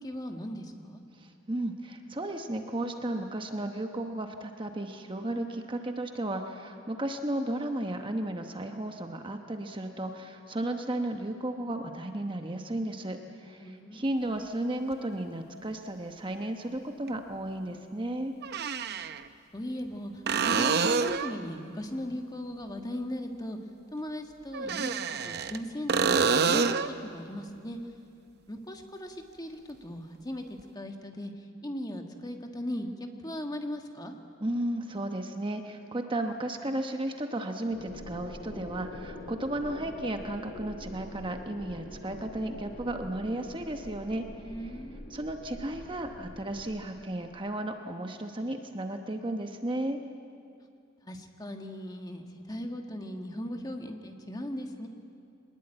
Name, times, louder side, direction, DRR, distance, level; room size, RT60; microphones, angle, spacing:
voice 1, 0.0-1.0 13.6-14.1 19.5-23.6 23.9-24.9 25.2-27.8 28.5-34.1 44.4-45.2 51.0-54.9, equal, 20° left, 4 dB, 1.6 m, -38 dB
voice 2, 1.2-18.3 34.4-44.5 45.1-50.0, right 1 dB, 25° right, 5 dB, 1.0 m, -34 dB
sound 1, 14.9-15.0 17.1-17.2 18.4-19.2 20.3-21.4 24.5-25.6 25.9-26.9 30.6-30.7, right 5 dB, 50° right, 0.7 m, -27 dB
sound 2, 37.7-46.7, left 1 dB, 50° left, 5.8 m, -45 dB
23.5 x 20.5 x 8.9 m, 2.5 s
head